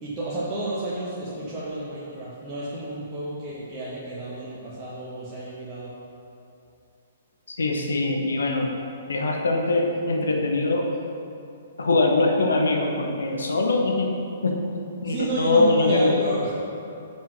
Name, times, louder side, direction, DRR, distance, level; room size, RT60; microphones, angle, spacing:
voice 1, 0.0-5.9 15.0-16.5, right 2 dB, 25° right, -9 dB, 1.3 m, -31 dB
voice 2, 7.5-8.7 9.1-10.8 11.8-14.1 14.4-14.6 15.0-16.2, left 2 dB, 70° left, 2 dB, 0.9 m, -22 dB
5.5 x 4.8 x 6.1 m, 2.6 s
figure-of-eight pair, 120°, 0 cm